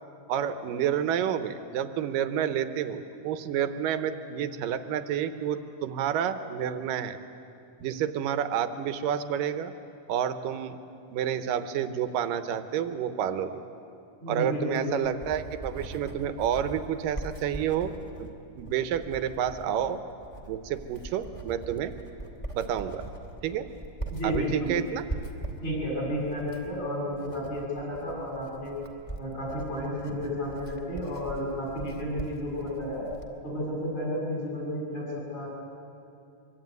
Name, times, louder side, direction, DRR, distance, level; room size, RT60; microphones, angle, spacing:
voice 1, 0.3-7.2 7.8-9.7 10.1-10.8 11.1-13.6 14.3-17.9 18.2-20.0 20.5-21.9 22.5-23.1 23.4-23.7 24.2-25.0, right 9 dB, 75° right, 10 dB, 2.7 m, -29 dB
voice 2, 14.2-14.9 24.1-24.8 25.6-28.8 29.2-33.1 33.4-35.5, equal, 50° left, -4 dB, 8.4 m, -32 dB
Writing, 14.7-33.4, right 2 dB, 10° left, 1.8 m, -41 dB
24.5 x 24.0 x 9.6 m, 2.6 s
omnidirectional pair, 4.0 m